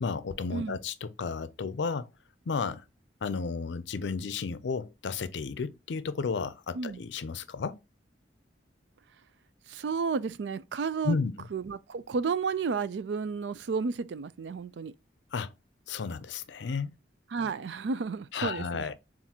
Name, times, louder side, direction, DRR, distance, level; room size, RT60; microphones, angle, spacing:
voice 1, 0.0-2.1 2.5-2.8 3.2-7.8 11.0-11.3 15.3-15.5 15.9-16.9 18.3-18.9, left 4 dB, 80° left, 0.5 m, -33 dB
voice 2, 9.7-11.2 11.5-14.9 17.3-18.9, right 5 dB, 75° right, 0.4 m, -32 dB
7.2 x 2.6 x 2.8 m
head